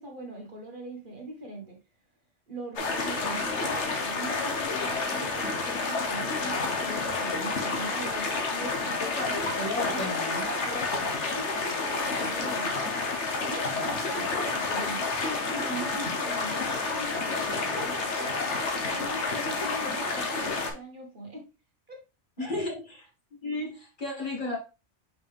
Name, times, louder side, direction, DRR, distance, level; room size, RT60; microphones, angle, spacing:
voice 1, 0.0-1.8 2.5-9.3 9.8-12.9 13.4-18.4 18.7-21.5 21.9-22.0 22.4-22.6, right 1 dB, 45° right, 2 dB, 1.4 m, -41 dB
sound 1, 2.8-20.7, left 3 dB, 70° left, 1.5 m, -30 dB
voice 2, 9.2-10.5 16.3-16.4 22.4-23.0 23.4-24.6, left 2 dB, 40° left, -2 dB, 2.4 m, -33 dB
5.6 x 4.9 x 3.5 m, 0.28 s
omnidirectional pair, 1.2 m